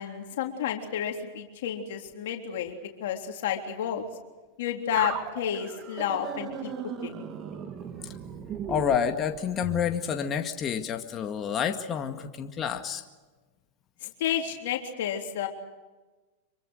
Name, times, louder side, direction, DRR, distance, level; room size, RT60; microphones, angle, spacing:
voice 1, 0.0-4.1 4.6-7.2 14.0-15.5, left 9 dB, 75° left, 2 dB, 3.5 m, -31 dB
sound 1, 5.0-9.9, right 7 dB, 35° right, 2.4 m, -37 dB
voice 2, 8.7-13.0, left 8 dB, 30° left, 5 dB, 2.0 m, -29 dB
26.5 x 24.0 x 6.5 m, 1.2 s
hypercardioid pair, 115°, 0 cm